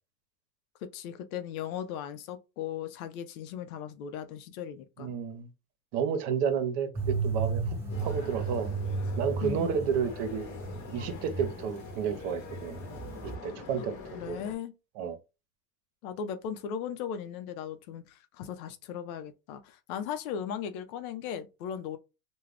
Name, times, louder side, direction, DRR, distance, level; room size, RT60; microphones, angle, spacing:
voice 1, 0.9-5.1 9.4-9.8 13.8-13.9 14.1-14.7 16.0-22.0, left 8 dB, 70° left, 0.7 m, -37 dB
voice 2, 5.0-5.5 5.9-8.7 9.2-10.5 10.9-12.8 13.2-14.0 14.3-14.4 15.0-15.2, right 7 dB, 60° right, 0.8 m, -31 dB
sound 1, 6.9-12.0 12.2-13.3, right 4 dB, 5° right, 1.0 m, -33 dB
sound 2, 7.9-14.6, left 5 dB, 40° left, 1.0 m, -44 dB
2.4 x 2.3 x 3.3 m
hypercardioid pair, 105°, 45 cm